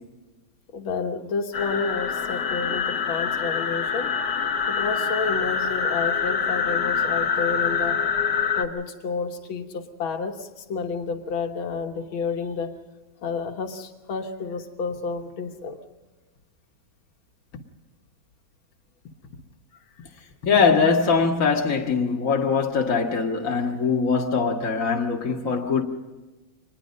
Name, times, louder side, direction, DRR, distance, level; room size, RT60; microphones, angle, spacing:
voice 1, 0.7-4.1 4.7-8.0 8.6-12.7 13.2-15.8, left 4 dB, 85° left, 2.1 m, -30 dB
sound 1, 1.5-8.6, left 6 dB, 60° left, 1.8 m, -25 dB
voice 2, 20.5-25.8, left 5 dB, 40° left, 2.2 m, -22 dB
24.5 x 20.0 x 5.4 m
omnidirectional pair, 2.2 m